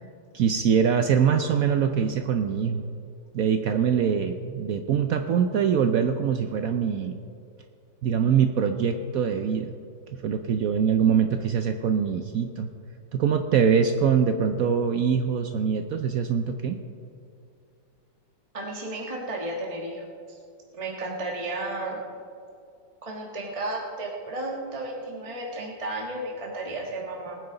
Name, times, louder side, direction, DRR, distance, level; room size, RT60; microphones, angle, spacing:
voice 1, 0.3-2.9 3.3-7.2 8.0-9.7 10.1-12.7 13.1-16.8, right 7 dB, 70° right, 6 dB, 0.8 m, -23 dB
voice 2, 18.5-20.4 20.7-22.0 23.0-27.3, right 2 dB, 20° right, -2 dB, 1.3 m, -33 dB
20.0 x 9.5 x 3.9 m, 2.5 s
omnidirectional pair, 2.0 m